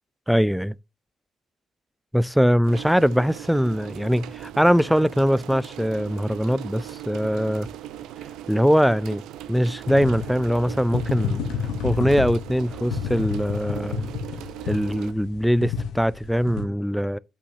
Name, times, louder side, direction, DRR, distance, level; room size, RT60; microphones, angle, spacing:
voice 1, 0.3-0.8 2.1-7.7 8.5-9.2 9.5-11.4 11.8-14.1 14.7-17.2, equal, ahead, 0.3 m, -22 dB
sound 1, 2.6-15.1, right 12 dB, 85° right, 0.5 m, -39 dB
sound 2, 9.9-16.6, left 6 dB, 90° left, 1.3 m, -30 dB
8.6 x 5.5 x 2.7 m
cardioid pair, 90°, 0 cm